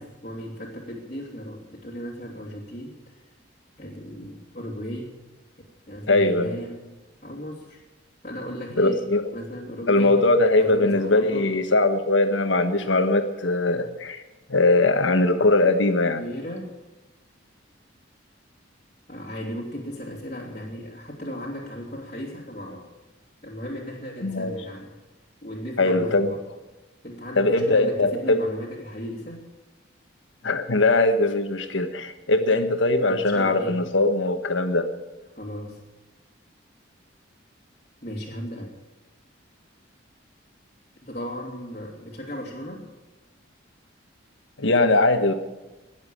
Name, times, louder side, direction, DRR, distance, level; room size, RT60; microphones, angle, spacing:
voice 1, 0.0-3.2 3.8-5.2 5.9-7.0 7.2-7.8 8.2-9.0 9.3-10.2 10.6-11.5 16.2-16.8 19.1-22.9 23.4-25.0 25.4-26.4 27.0-29.4 33.0-33.8 35.3-35.8 38.0-38.7 41.0-42.9, equal, 35° left, -4 dB, 2.8 m, -36 dB
voice 2, 6.1-6.6 8.8-9.3 9.9-14.2 14.5-16.2 24.2-24.5 25.8-26.3 27.3-28.4 30.4-34.9 44.6-45.3, left 2 dB, 75° left, 8 dB, 1.4 m, -21 dB
19.5 x 7.4 x 8.6 m, 1.1 s
head